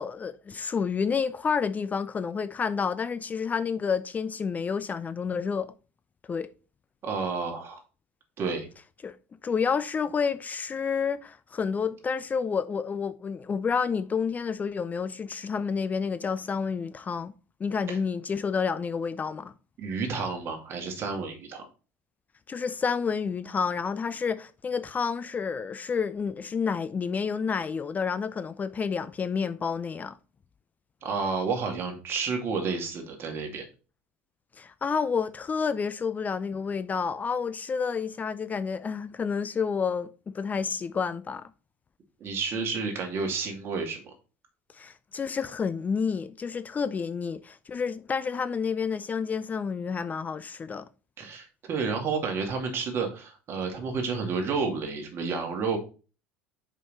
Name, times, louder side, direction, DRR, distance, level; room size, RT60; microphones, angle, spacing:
voice 1, 0.0-5.7 6.3-6.5 9.0-9.2 9.4-17.3 17.6-19.5 22.5-30.2 34.6-41.5 44.7-50.9, left 6 dB, 25° left, 0.4 m, -29 dB
voice 2, 7.0-7.8 8.4-8.7 17.9-18.0 19.8-21.6 31.0-33.7 42.2-44.1 51.2-55.8, right 4 dB, 45° right, 2.4 m, -30 dB
5.4 x 5.3 x 4.2 m
hypercardioid pair, 80°, 6 cm